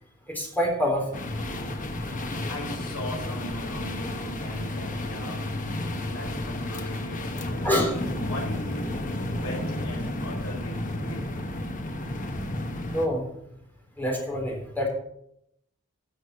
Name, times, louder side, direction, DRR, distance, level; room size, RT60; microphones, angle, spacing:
voice 1, 0.3-1.2 7.6-8.0 12.9-13.2 14.0-14.9, equal, 10° left, 0 dB, 3.6 m, -26 dB
sound 1, 1.1-13.1, left 1 dB, 35° left, 1.2 m, -32 dB
voice 2, 2.3-5.4 5.8-7.7 8.1-8.8 9.3-11.4, left 1 dB, 70° left, -3 dB, 5.0 m, -39 dB
13.0 x 6.5 x 6.7 m, 0.74 s
head